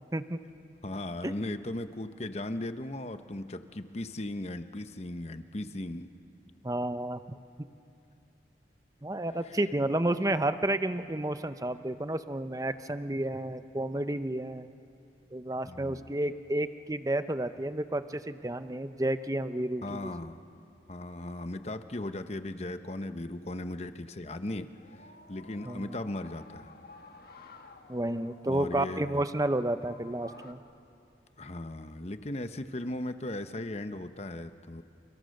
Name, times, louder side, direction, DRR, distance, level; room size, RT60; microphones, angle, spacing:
voice 1, 0.8-6.1 9.4-9.6 15.7-16.1 19.8-20.4 20.9-26.7 28.4-29.2 31.4-34.8, left 1 dB, 35° left, 9 dB, 1.0 m, -37 dB
voice 2, 6.6-7.2 9.0-14.7 15.3-20.1 25.6-25.9 27.9-30.6, right 1 dB, 20° right, 11 dB, 0.7 m, -31 dB
sound 1, 24.5-30.5, left 3 dB, 55° left, 1.6 m, -53 dB
29.5 x 29.5 x 6.6 m, 2.6 s
head